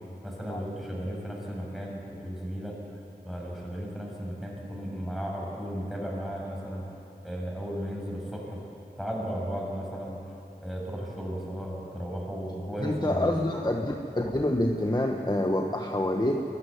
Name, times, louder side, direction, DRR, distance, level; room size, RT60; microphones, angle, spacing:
voice 1, 0.2-2.8 3.2-6.8 7.2-8.6 9.0-10.2 10.6-13.3, equal, ahead, -3 dB, 6.7 m, -35 dB
voice 2, 12.8-16.4, left 1 dB, 25° left, 2 dB, 1.3 m, -27 dB
22.0 x 13.5 x 9.5 m, 2.8 s
wide cardioid pair, 40°, 17 cm